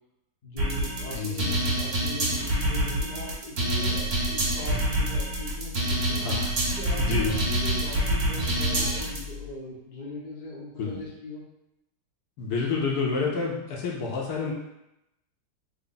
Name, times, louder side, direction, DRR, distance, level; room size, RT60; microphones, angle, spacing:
voice 1, 0.4-6.3 6.8-11.4, left 2 dB, 45° left, -4 dB, 0.6 m, -40 dB
sound 1, 0.6-9.2, right 1 dB, 55° right, 1.0 m, -27 dB
voice 2, 1.1-1.6 4.7-4.8 6.2-7.4 10.8-10.9 12.4-14.5, left 4 dB, 70° left, -2 dB, 1.1 m, -29 dB
Growling, 3.2-9.6, equal, 75° right, 0.6 m, -39 dB
3.3 x 2.0 x 3.8 m, 0.87 s
omnidirectional pair, 1.8 m